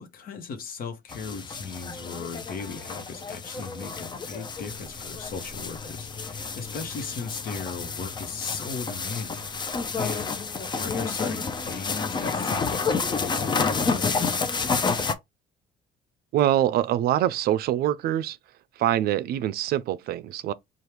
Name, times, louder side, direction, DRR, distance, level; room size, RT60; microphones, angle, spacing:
voice 1, 0.0-10.3 10.8-14.4, left 5 dB, 60° left, 1.1 m, -37 dB
sound 1, 1.1-15.1, left 4 dB, 25° left, 0.6 m, -30 dB
voice 2, 16.3-18.4 18.8-20.5, right 12 dB, 65° right, 0.4 m, -24 dB
4.4 x 2.4 x 3.2 m
cardioid pair, 110°, 17 cm